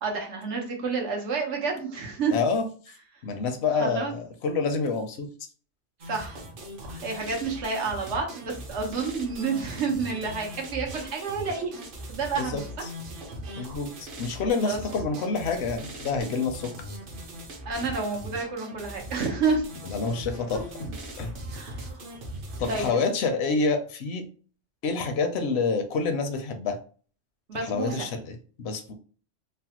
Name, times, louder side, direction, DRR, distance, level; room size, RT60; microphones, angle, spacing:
voice 1, 0.0-2.4 3.7-4.1 6.0-6.5 6.9-11.8 12.1-12.7 14.6-14.8 17.7-19.6 20.5-20.6 21.5-22.1 22.7-23.0 27.5-28.1, right 4 dB, 90° right, 1 dB, 1.1 m, -29 dB
voice 2, 2.3-2.6 3.2-5.3 12.4-12.9 13.6-16.7 19.8-20.6 21.2-21.3 22.6-24.2 24.8-26.8 27.5-28.9, left 4 dB, 75° left, 7 dB, 0.8 m, -28 dB
sound 1, 6.0-22.9, right 1 dB, 55° right, 0.8 m, -40 dB
3.2 x 2.1 x 2.8 m, 0.41 s
omnidirectional pair, 1.2 m